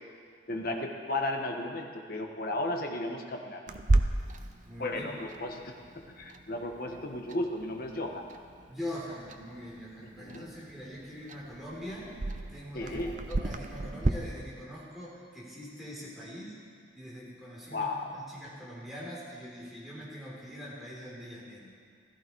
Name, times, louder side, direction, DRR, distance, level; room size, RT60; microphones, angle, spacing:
voice 1, 0.5-3.6 4.8-5.6 6.2-8.2 10.2-10.5 12.7-13.1 17.7-18.1, left 2 dB, 45° left, 2 dB, 1.3 m, -34 dB
Clock, 3.7-14.1, right 2 dB, 40° right, 0.6 m, -34 dB
voice 2, 4.7-5.2 8.7-12.1 12.5-16.6 16.9-21.7, equal, ahead, -7 dB, 3.6 m, -43 dB
15.5 x 14.0 x 4.7 m, 2.1 s
head